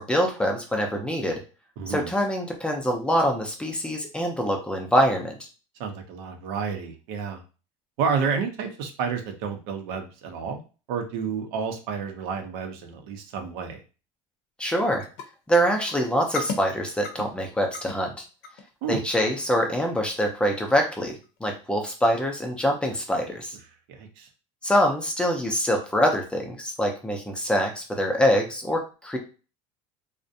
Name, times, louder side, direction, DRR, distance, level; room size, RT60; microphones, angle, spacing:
voice 1, 0.0-1.4 1.9-5.3 14.6-15.1 15.5-18.2 18.9-21.2 21.4-23.6 24.6-29.2, equal, 5° left, 2 dB, 0.5 m, -24 dB
voice 2, 1.8-2.1 5.8-7.4 8.0-10.6 10.9-13.8 18.8-19.0 23.9-24.3, right 6 dB, 80° right, 4 dB, 0.6 m, -30 dB
sound 1, 15.0-15.2 15.5-15.9 16.2-16.6 17.0-17.3 17.7-18.0 18.4-18.7 19.1-19.4 19.8-20.1 20.5-20.8 21.2-21.4 21.9-22.0, left 4 dB, 75° left, 0.6 m, -34 dB
2.5 x 2.1 x 2.6 m, 0.34 s
cardioid pair, 135°, 13 cm